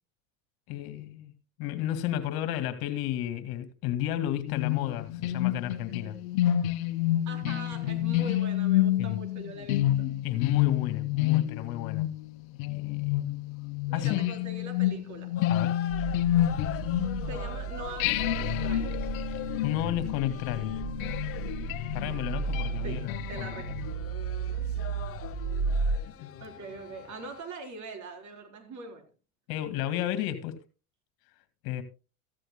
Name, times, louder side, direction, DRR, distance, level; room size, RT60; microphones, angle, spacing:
voice 1, 0.7-1.3 1.6-6.2 7.9-8.0 9.0-9.2 10.2-12.1 12.7-13.4 13.9-14.3 15.5-15.8 19.6-20.8 21.9-23.8 26.2-26.4 29.5-30.6 31.6-31.8, left 12 dB, 60° left, 2.3 m, -32 dB
sound 1, 4.5-17.5 18.0-23.9, left 13 dB, 75° left, 1.0 m, -29 dB
voice 2, 7.3-10.1 13.9-15.3 17.2-19.1 22.8-23.7 26.4-29.0, right 2 dB, 45° right, 4.1 m, -42 dB
sound 2, 15.3-27.4, left 11 dB, 35° left, 1.0 m, -44 dB
sound 3, 15.9-26.0, right 4 dB, 25° right, 1.9 m, -34 dB
15.0 x 14.0 x 2.2 m
supercardioid pair, 110°, 42 cm